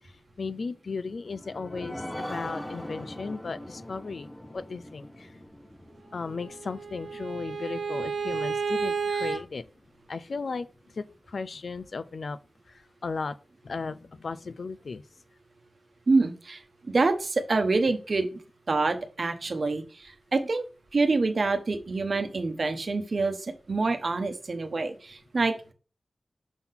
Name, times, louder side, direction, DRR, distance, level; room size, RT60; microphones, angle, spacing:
voice 1, 0.4-4.3 4.5-5.1 6.1-9.6 10.1-10.7 11.0-11.1 11.3-12.4 13.0-13.3 13.6-15.0, left 4 dB, 70° left, 0.5 m, -35 dB
sound 1, 1.1-8.2 8.7-8.8 9.1-9.2, left 1 dB, 10° left, 0.8 m, -41 dB
Bowed string instrument, 6.3-9.4, right 5 dB, 80° right, 1.2 m, -31 dB
voice 2, 16.1-16.6 16.9-18.3 18.7-20.6 20.9-23.4 23.7-25.5, right 3 dB, 55° right, 1.0 m, -26 dB
6.1 x 3.8 x 5.7 m
wide cardioid pair, 110°, 0 cm